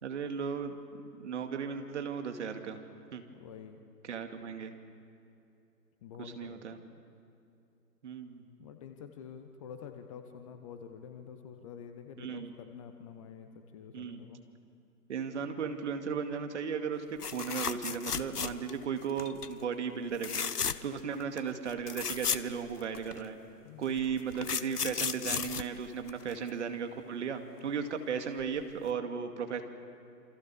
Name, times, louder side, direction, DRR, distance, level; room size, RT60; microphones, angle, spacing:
voice 1, 0.0-0.8 1.2-2.8 3.1-3.2 4.0-4.7 6.2-6.8 8.0-8.4 12.2-12.5 13.9-14.3 15.1-23.4 23.8-29.6, right 6 dB, 45° right, 6 dB, 2.4 m, -36 dB
voice 2, 3.3-3.8 6.0-6.8 8.6-14.4 23.6-24.1, left 7 dB, 20° left, 7 dB, 1.0 m, -48 dB
sound 1, 17.2-18.8 19.2-19.5 20.2-21.0 21.4-21.5 21.7-23.2 24.0-26.5 28.4-28.6 28.9-29.0, left 6 dB, 65° left, 1.1 m, -34 dB
28.0 x 25.0 x 7.1 m, 2.6 s
figure-of-eight pair, 125°, 49 cm